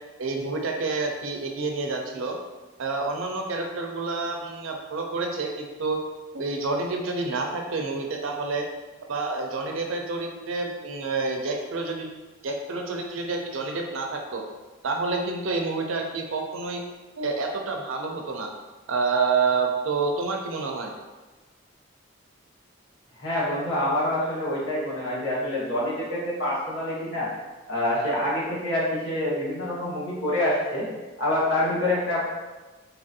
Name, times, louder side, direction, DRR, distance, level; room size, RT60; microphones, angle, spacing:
voice 1, 0.2-2.4 2.8-6.0 6.3-8.6 9.1-12.1 12.4-14.4 14.8-16.8 17.2-18.5 18.9-20.9, right 3 dB, 80° right, 2 dB, 0.5 m, -28 dB
voice 2, 23.2-27.3 27.7-30.9 31.2-32.3, left 1 dB, 70° left, -7 dB, 1.2 m, -26 dB
3.9 x 2.5 x 2.7 m, 1.2 s
head